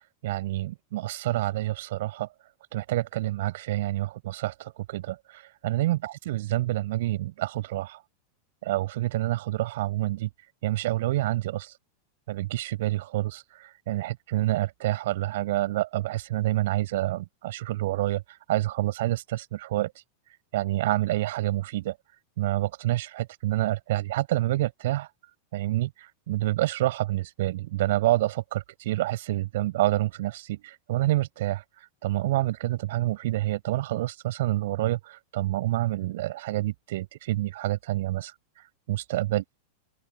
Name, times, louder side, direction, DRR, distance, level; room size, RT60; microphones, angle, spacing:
voice 1, 0.2-2.3 2.7-8.0 8.6-10.3 10.6-11.7 12.3-18.2 18.5-19.9 20.5-21.9 22.4-25.1 25.5-38.3 38.9-39.4, right 16 dB, 55° right, 6.4 m, -28 dB
open air
figure-of-eight pair, 90°, 0 cm